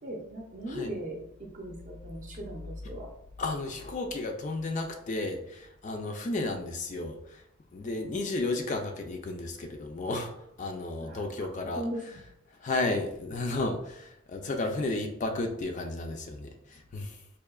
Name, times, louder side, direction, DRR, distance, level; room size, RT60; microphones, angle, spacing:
voice 1, 0.0-3.1 6.4-6.5 8.1-8.2 11.0-12.2, right 1 dB, 35° right, 1 dB, 0.6 m, -39 dB
voice 2, 3.4-7.4 7.7-10.3 10.6-11.8 12.6-17.2, left 2 dB, 35° left, 4 dB, 0.3 m, -33 dB
4.7 x 2.7 x 2.3 m, 0.78 s
head